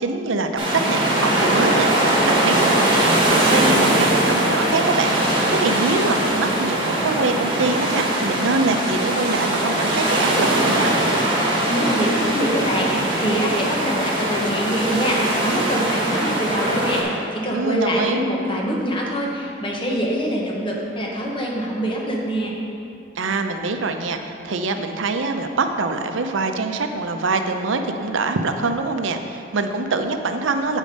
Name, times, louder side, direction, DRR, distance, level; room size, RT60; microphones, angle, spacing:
voice 1, 0.0-11.0 17.5-18.2 23.1-30.8, right 3 dB, 80° right, 6 dB, 0.6 m, -24 dB
sound 1, 0.6-17.0, right 1 dB, 25° right, 1.5 m, -21 dB
voice 2, 11.7-22.5, equal, 25° left, -2 dB, 1.0 m, -24 dB
8.2 x 5.1 x 5.3 m, 2.6 s
head